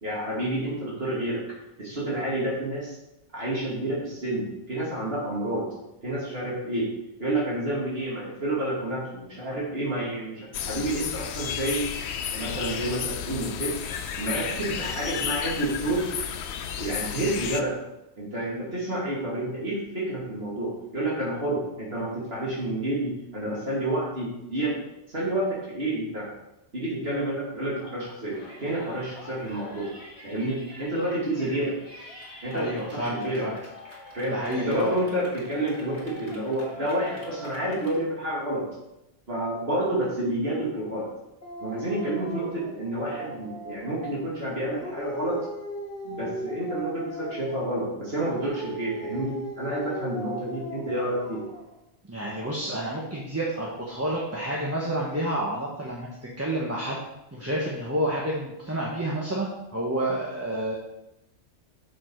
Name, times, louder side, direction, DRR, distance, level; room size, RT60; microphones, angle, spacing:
voice 1, 0.0-1.4 1.8-3.0 3.3-5.7 6.0-6.9 7.2-11.8 12.3-13.7 14.2-16.1 16.8-17.7 18.2-24.7 25.1-26.3 26.7-29.9 30.2-31.7 32.4-33.5 34.2-38.7 39.3-41.1 41.6-45.4 46.0-51.4, right 1 dB, 55° right, -6 dB, 2.6 m, -29 dB
sound 1, 10.5-17.6, left 8 dB, 70° left, 0.9 m, -32 dB
Yell, 28.3-38.0, left 1 dB, 25° left, 2.6 m, -45 dB
voice 2, 32.5-33.6 34.3-35.0 52.1-56.1 56.4-57.0 57.3-60.8, right 1 dB, 15° right, -4 dB, 1.2 m, -29 dB
Dog, 41.4-44.2 44.7-47.8 48.2-51.7, equal, 40° left, 2.1 m, -38 dB
7.2 x 7.2 x 4.6 m, 0.90 s
omnidirectional pair, 1.2 m